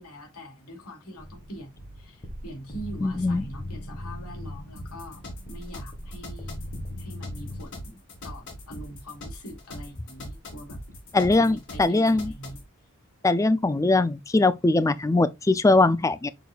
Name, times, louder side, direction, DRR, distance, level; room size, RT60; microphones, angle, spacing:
voice 1, 0.0-6.6 7.0-10.8 11.2-12.6, right 1 dB, 85° left, 2.6 m, -43 dB
sound 1, 1.2-7.6, left 1 dB, 30° left, 1.5 m, -39 dB
voice 2, 3.0-3.4 11.1-12.3 13.2-16.3, left 2 dB, 15° left, 0.4 m, -21 dB
sound 2, 4.8-12.7, left 1 dB, 55° left, 4.0 m, -41 dB
7.0 x 6.0 x 2.3 m
head